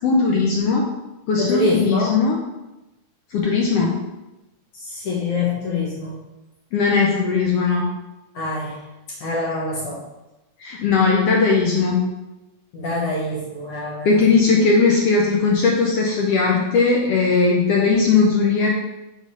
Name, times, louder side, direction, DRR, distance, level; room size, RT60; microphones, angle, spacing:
voice 1, 0.0-0.8 1.3-2.4 3.3-3.9 6.7-7.9 10.6-12.0 14.0-18.7, left 4 dB, 85° left, -2 dB, 1.3 m, -18 dB
voice 2, 1.4-2.2 4.7-6.2 8.3-8.8 9.1-10.0 12.7-14.3, left 2 dB, 65° left, -5 dB, 1.5 m, -25 dB
4.9 x 3.9 x 5.2 m, 1.0 s
omnidirectional pair, 3.6 m